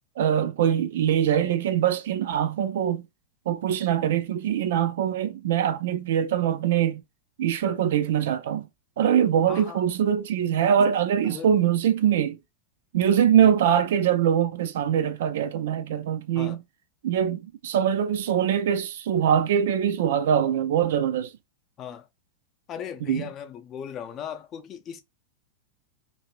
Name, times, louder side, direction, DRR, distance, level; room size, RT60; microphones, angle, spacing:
voice 1, 0.2-3.0 3.5-7.0 7.4-8.7 9.0-12.4 12.9-16.6 17.0-21.3 23.1-23.2, right 9 dB, 55° right, 0.4 m, -23 dB
voice 2, 9.5-9.8 11.2-11.6 13.4-13.5 16.3-16.6 21.8-22.0 22.7-25.0, left 8 dB, 30° left, 0.5 m, -37 dB
2.7 x 2.7 x 2.9 m
figure-of-eight pair, 90°, 0 cm